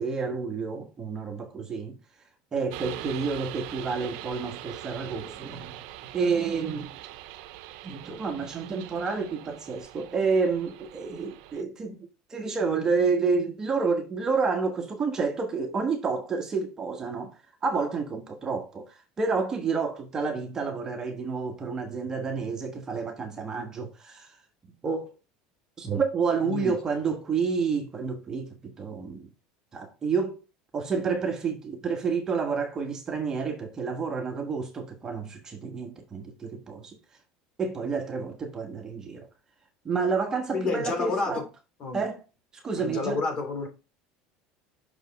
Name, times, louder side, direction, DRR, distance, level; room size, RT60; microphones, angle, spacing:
voice 1, 0.0-2.0 2.5-5.7 6.1-6.9 7.8-17.3 17.6-24.3 24.8-25.2 25.8-29.3 29.7-30.4 30.7-37.0 37.6-39.3 39.8-41.4 41.9-42.2 42.6-43.2, right 5 dB, 25° right, 1.4 m, -29 dB
sound 1, 2.7-11.6, right 15 dB, 75° right, 0.6 m, -42 dB
voice 2, 26.4-26.8 40.5-41.4 41.8-42.0 42.8-43.7, left 4 dB, 40° left, 3.2 m, -29 dB
6.2 x 5.3 x 4.1 m
supercardioid pair, 125°, 2 cm